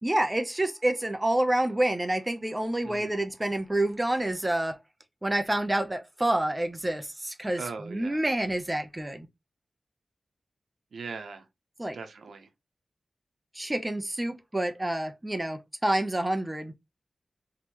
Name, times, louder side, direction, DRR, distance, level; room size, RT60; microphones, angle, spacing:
voice 1, 0.0-4.8 5.2-7.6 7.9-9.3 11.8-12.0 13.5-16.7, right 1 dB, 15° right, 0.6 m, -28 dB
voice 2, 2.8-3.2 7.5-8.2 10.9-11.5 11.9-12.5, right 4 dB, 85° right, 0.7 m, -40 dB
3.6 x 3.2 x 3.0 m
wide cardioid pair, 95°, 0 cm